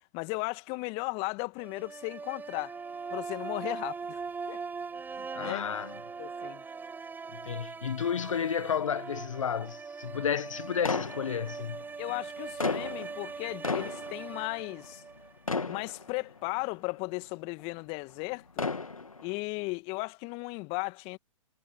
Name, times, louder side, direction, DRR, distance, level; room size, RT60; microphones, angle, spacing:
voice 1, 0.1-2.7 3.1-4.2 4.5-4.7 5.2-5.6 6.2-6.6 12.0-15.0 15.7-18.7 19.2-21.2, left 28 dB, 35° left, 1.9 m, -36 dB
sound 1, 1.6-15.7, right 5 dB, 10° right, 5.9 m, -41 dB
voice 2, 5.3-6.0 7.3-11.8, left 8 dB, 70° left, 1.3 m, -32 dB
sound 2, 10.8-11.8 12.4-15.2 15.5-16.5 17.2-17.3 18.3-19.4, left 4 dB, 90° left, 2.1 m, -34 dB
figure-of-eight pair, 120°, 17 cm